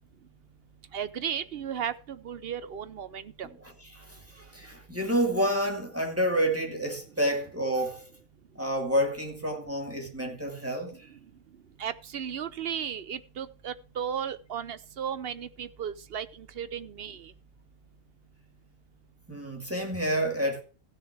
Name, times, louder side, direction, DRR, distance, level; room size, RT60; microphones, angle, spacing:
voice 1, 0.9-3.5 11.8-17.3, right 8 dB, 50° right, 0.8 m, -35 dB
voice 2, 3.9-8.1 8.6-11.1 19.3-20.6, equal, 10° right, 2.5 m, -29 dB
15.5 x 6.9 x 4.7 m
omnidirectional pair, 1.5 m